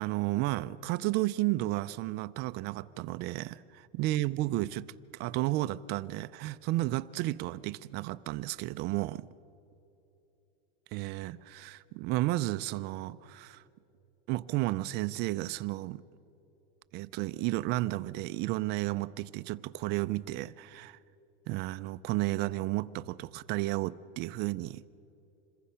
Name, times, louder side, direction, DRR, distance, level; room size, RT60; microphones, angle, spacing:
voice 1, 0.0-4.9 5.1-9.3 10.9-13.6 14.3-16.0 16.9-21.0 21.5-24.8, right 18 dB, 35° right, 0.4 m, -32 dB
27.0 x 21.5 x 5.6 m
supercardioid pair, 150°, 31 cm